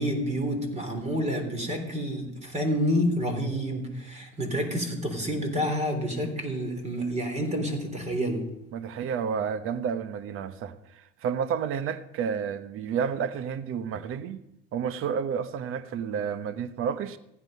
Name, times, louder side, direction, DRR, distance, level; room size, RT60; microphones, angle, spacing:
voice 1, 0.0-8.4, equal, 20° right, 3.6 m, -29 dB
voice 2, 8.7-14.4 14.7-17.2, right 7 dB, 45° right, 1.0 m, -30 dB
15.5 x 9.8 x 5.4 m
supercardioid pair, 100°, 30 cm